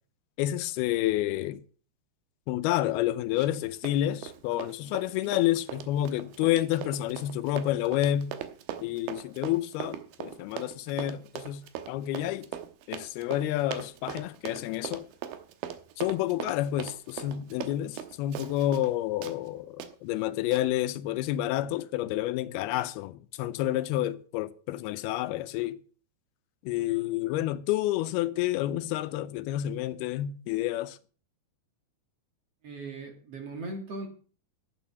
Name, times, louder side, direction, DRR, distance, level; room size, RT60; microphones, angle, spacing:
voice 1, 0.4-1.6 2.5-8.3 8.8-11.6 11.9-12.5 12.9-15.1 16.0-25.8 26.7-31.0, left 14 dB, 85° left, 2.6 m, -29 dB
Run, 3.3-3.6 3.9-18.9 19.2-19.4 19.8-19.9 20.5-20.6, right 10 dB, 80° right, 2.8 m, -40 dB
voice 2, 32.6-34.1, right 2 dB, 50° right, 2.1 m, -38 dB
11.5 x 9.1 x 5.6 m
omnidirectional pair, 4.4 m